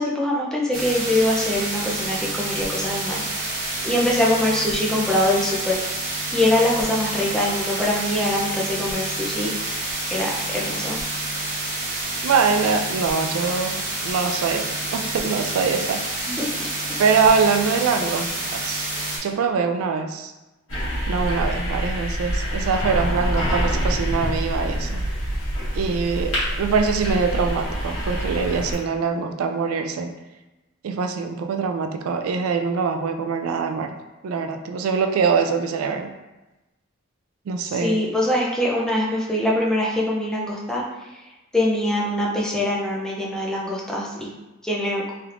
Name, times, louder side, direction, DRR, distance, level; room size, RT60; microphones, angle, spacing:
voice 1, 0.0-5.8 6.3-9.5 10.1-11.0 16.3-16.7 37.6-40.8 41.5-44.3 44.6-45.0, left 1 dB, 5° left, -4 dB, 0.5 m, -23 dB
sound 1, 0.7-19.2, right 2 dB, 60° right, 1.0 m, -28 dB
voice 2, 12.2-16.1 17.0-18.9 19.2-20.3 21.1-25.0 25.7-30.1 30.8-33.9 34.2-36.1 37.5-38.0, right 5 dB, 85° right, 6 dB, 0.3 m, -23 dB
sound 2, 20.7-28.7, equal, 70° left, 1.4 m, -26 dB
3.3 x 2.9 x 2.4 m, 1.0 s
head